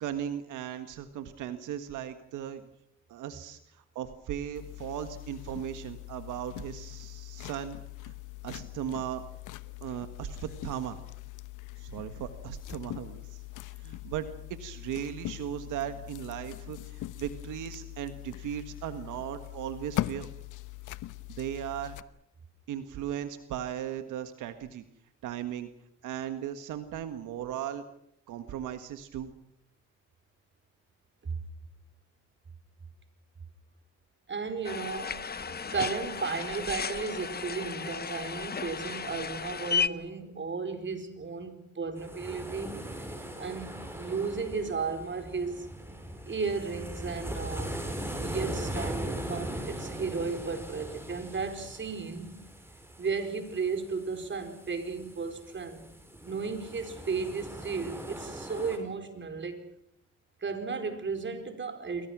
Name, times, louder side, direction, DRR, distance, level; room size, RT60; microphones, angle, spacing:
voice 1, 0.0-2.6 3.1-7.8 8.0-8.1 8.4-9.3 9.8-11.0 11.8-13.4 13.7-20.3 21.3-21.9 22.7-24.8 25.2-25.7 26.0-27.8 28.3-29.3, right 10 dB, 85° right, 1.6 m, -37 dB
sound 1, 4.5-22.0, left 16 dB, 85° left, 1.0 m, -41 dB
voice 2, 34.3-35.3 35.7-42.9 43.4-45.7 46.3-47.8 48.2-52.5 53.0-55.8 56.2-59.6 60.4-62.1, right 4 dB, 40° right, 4.5 m, -34 dB
sound 2, 34.6-39.9, left 6 dB, 30° left, 1.1 m, -34 dB
sound 3, 42.0-58.8, right 1 dB, 10° right, 5.9 m, -40 dB
28.0 x 23.5 x 6.2 m
cardioid pair, 90°, 30 cm